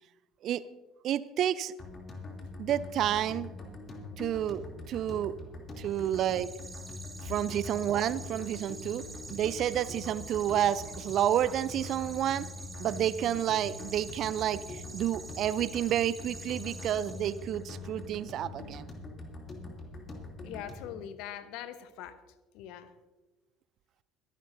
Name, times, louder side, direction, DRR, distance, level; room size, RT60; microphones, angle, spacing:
voice 1, 1.0-1.7 2.6-3.5 4.2-5.3 5.8-6.5 7.2-9.0 9.3-12.5 12.8-18.9, right 11 dB, 50° right, 17 dB, 0.5 m, -30 dB
sound 1, 1.8-21.0, left 3 dB, 30° left, 2.9 m, -44 dB
sound 2, 5.9-17.7, right 3 dB, 15° right, 2.0 m, -47 dB
voice 2, 20.4-22.2 22.5-22.9, left 10 dB, 55° left, 13 dB, 0.9 m, -42 dB
24.5 x 12.0 x 2.7 m, 1.2 s
figure-of-eight pair, 60°, 0 cm